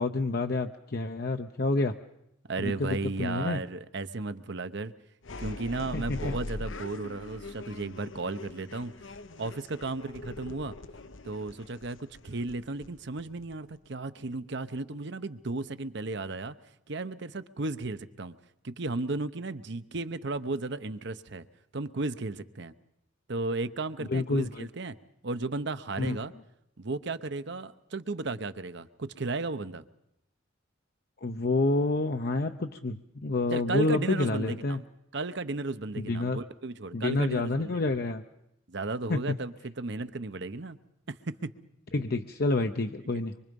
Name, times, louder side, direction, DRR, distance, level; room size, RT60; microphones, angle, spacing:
voice 1, 0.0-1.9 2.6-3.6 5.9-6.3 24.1-24.7 26.0-26.2 31.2-34.8 36.0-36.4 36.9-38.2 39.1-39.4 41.9-43.4, left 2 dB, 50° left, 6 dB, 0.7 m, -28 dB
voice 2, 2.5-4.9 5.4-10.8 11.2-16.5 16.9-18.3 18.6-21.5 21.7-22.7 23.3-25.0 25.2-26.3 26.8-29.8 33.5-34.8 35.1-37.8 38.7-40.8 41.1-41.5, right 3 dB, 60° right, 12 dB, 0.9 m, -34 dB
sound 1, 5.2-13.9, left 2 dB, 80° left, 0.9 m, -42 dB
24.5 x 24.0 x 5.4 m, 0.79 s
head